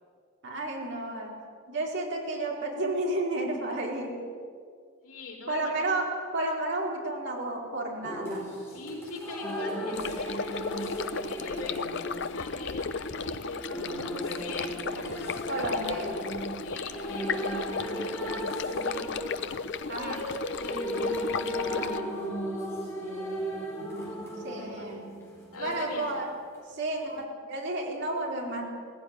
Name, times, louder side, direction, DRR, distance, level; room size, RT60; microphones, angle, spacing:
voice 1, 0.4-1.3 1.7-4.1 5.5-6.1 6.3-8.5 15.5-16.3 19.9-20.2 24.4-25.1 25.6-26.3 26.7-27.2 27.5-28.7, right 2 dB, 55° right, -1 dB, 4.4 m, -31 dB
voice 2, 5.0-6.0 8.7-11.8 12.3-15.9 16.5-19.4 19.6-22.1 24.6-24.9 25.5-26.2, left 2 dB, 90° left, 0 dB, 4.7 m, -42 dB
sound 1, 8.0-25.8 27.1-27.2, equal, 10° left, 3.7 m, -36 dB
sound 2, 9.9-22.0, left 4 dB, 55° left, 0.8 m, -35 dB
18.5 x 16.0 x 9.7 m, 2.1 s
head